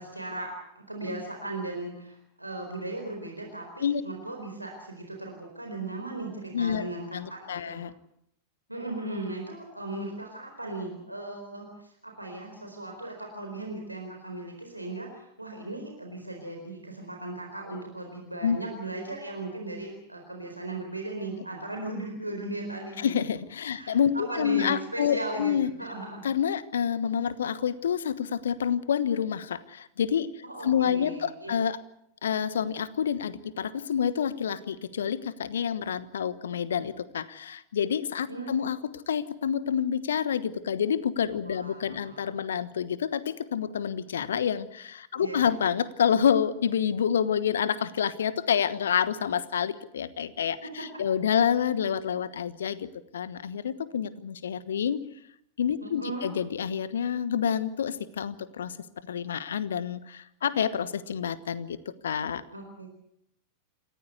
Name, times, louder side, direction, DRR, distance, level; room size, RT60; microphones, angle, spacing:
voice 1, 0.0-7.8 8.7-23.1 23.7-25.5 25.8-26.2 30.4-31.5 38.3-38.6 41.5-42.2 45.1-45.6 50.6-50.9 55.8-56.3 62.5-62.9, right 2 dB, 85° right, 2 dB, 4.4 m, -37 dB
voice 2, 6.5-6.8 7.1-7.9 18.4-18.6 23.0-25.7 26.2-31.8 32.2-38.8 39.1-52.9 53.1-55.0 55.6-58.8 59.1-61.8 62.0-62.4, left 8 dB, 65° left, 16 dB, 1.2 m, -28 dB
28.0 x 15.0 x 8.2 m, 0.75 s
figure-of-eight pair, 90°, 0 cm